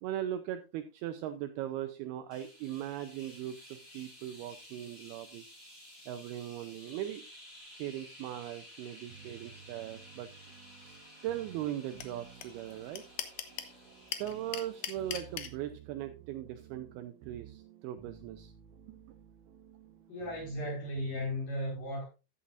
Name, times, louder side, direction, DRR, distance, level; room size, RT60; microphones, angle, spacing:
voice 1, 0.0-5.5 6.1-7.2 7.7-10.3 10.8-11.0 11.2-13.0 14.2-18.5 18.9-19.0, right 12 dB, 90° right, 2.2 m, -39 dB
sound 1, 2.3-15.6, equal, 25° left, 2.1 m, -54 dB
sound 2, 9.1-21.4, right 9 dB, 70° right, 2.4 m, -55 dB
sound 3, 12.0-12.1 12.4-12.5 12.7-13.7 14.1-15.5, left 11 dB, 75° left, 2.2 m, -37 dB
voice 2, 20.1-22.0, left 1 dB, 50° left, 6.7 m, -35 dB
14.0 x 8.7 x 2.5 m
omnidirectional pair, 5.2 m